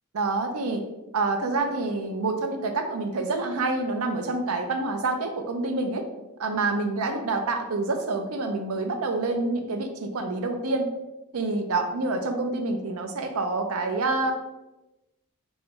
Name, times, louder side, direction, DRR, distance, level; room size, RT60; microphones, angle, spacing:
voice 1, 0.1-0.8 1.1-6.0 6.4-10.8 11.3-14.3, right 3 dB, 75° right, 6 dB, 0.5 m, -27 dB
3.5 x 3.1 x 2.9 m, 1.0 s
head